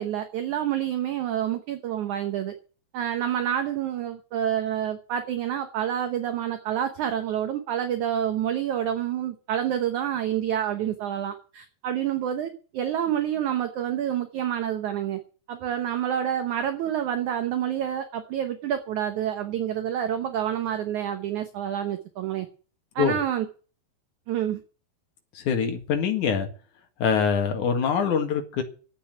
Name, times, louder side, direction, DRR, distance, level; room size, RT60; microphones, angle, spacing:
voice 1, 0.0-2.5 2.9-15.2 15.5-22.5 23.0-23.5 24.3-24.6, right 10 dB, 70° right, 1.8 m, -28 dB
voice 2, 25.3-26.5 27.0-28.6, left 6 dB, 55° left, 2.9 m, -24 dB
12.0 x 8.5 x 9.4 m
omnidirectional pair, 4.8 m